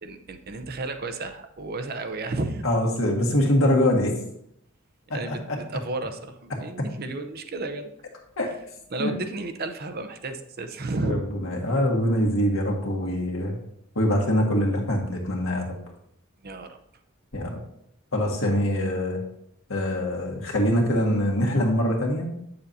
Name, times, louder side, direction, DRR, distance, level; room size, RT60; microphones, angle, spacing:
voice 1, 0.0-2.6 5.1-7.9 8.9-11.2 16.4-16.8, right 2 dB, 45° right, 8 dB, 0.6 m, -32 dB
voice 2, 2.6-4.2 5.1-5.6 8.4-8.5 9.0-9.1 11.1-13.6 14.0-15.8 17.3-17.6 18.1-19.2 19.7-22.3, equal, 75° left, 0 dB, 1.7 m, -24 dB
8.6 x 6.8 x 2.7 m, 0.74 s
head